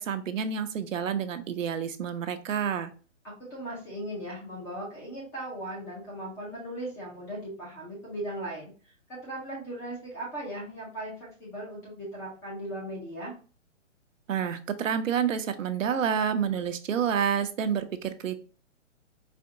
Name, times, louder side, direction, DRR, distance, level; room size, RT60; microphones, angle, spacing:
voice 1, 0.0-2.9 14.3-18.4, right 7 dB, 80° right, 9 dB, 0.7 m, -29 dB
voice 2, 3.2-8.7 9.1-13.3, right 1 dB, 5° left, -5 dB, 0.4 m, -38 dB
4.2 x 2.7 x 2.5 m, 0.37 s
hypercardioid pair, 145°, 38 cm